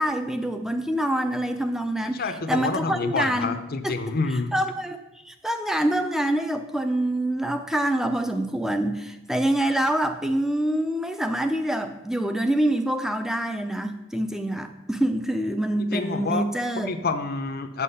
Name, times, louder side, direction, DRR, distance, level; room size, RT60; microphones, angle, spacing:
voice 1, 0.0-2.2 2.5-3.5 3.8-3.9 4.5-5.0 5.2-16.9, right 1 dB, ahead, 8 dB, 0.6 m, -25 dB
voice 2, 2.0-4.5 15.9-16.5 16.8-17.8, left 3 dB, 45° left, 7 dB, 0.7 m, -28 dB
8.4 x 7.4 x 5.6 m, 0.95 s
head